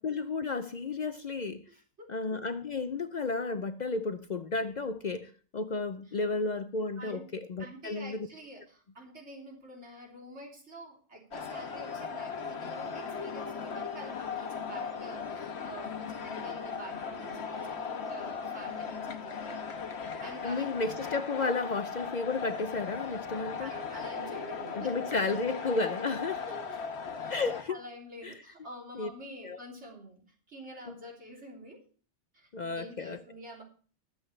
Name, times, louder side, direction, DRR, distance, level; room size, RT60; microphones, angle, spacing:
voice 1, 0.0-1.6 2.1-8.3 20.4-23.7 24.8-26.4 27.3-27.8 28.2-28.3 28.9-29.1 29.4-29.6 30.9-31.0 32.5-33.2, left 3 dB, 50° left, 0.6 m, -33 dB
voice 2, 1.7-2.1 6.1-6.2 7.0-7.2 7.6-20.7 23.6-24.9 26.5-26.8 27.2-27.3 27.7-30.2 30.5-31.8 32.3-33.6, right 1 dB, 75° right, 3.7 m, -47 dB
sound 1, 11.3-27.6, left 6 dB, 70° left, 1.3 m, -38 dB
21.0 x 8.0 x 3.2 m
omnidirectional pair, 1.2 m